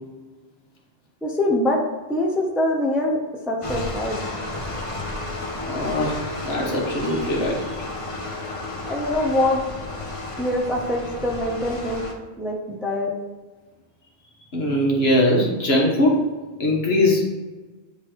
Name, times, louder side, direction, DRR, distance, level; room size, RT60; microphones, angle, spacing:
voice 1, 1.2-1.8 2.1-3.2 3.5-4.2 8.9-9.6 10.4-12.0 12.4-13.1, left 1 dB, ahead, -1 dB, 0.6 m, -23 dB
sound 1, 3.6-12.1, left 2 dB, 30° left, 0.8 m, -32 dB
voice 2, 5.7-6.2 6.4-7.6 14.5-16.2 16.6-17.3, left 1 dB, 65° left, -2 dB, 1.5 m, -21 dB
9.5 x 3.3 x 3.1 m, 1.3 s
omnidirectional pair, 1.1 m